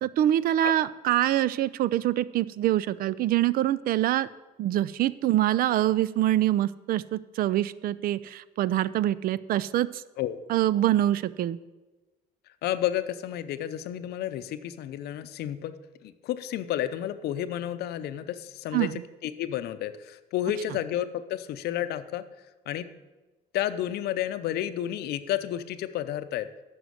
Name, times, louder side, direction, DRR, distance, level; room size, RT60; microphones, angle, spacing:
voice 1, 0.0-4.3 4.6-10.0 10.5-11.6 18.7-18.9, right 13 dB, 60° right, 18 dB, 0.4 m, -25 dB
voice 2, 12.6-15.7 16.0-18.9 19.2-22.2 22.7-22.9 23.5-26.5, left 12 dB, 70° left, 12 dB, 0.6 m, -31 dB
9.3 x 6.3 x 6.3 m, 1.2 s
cardioid pair, 110°, 17 cm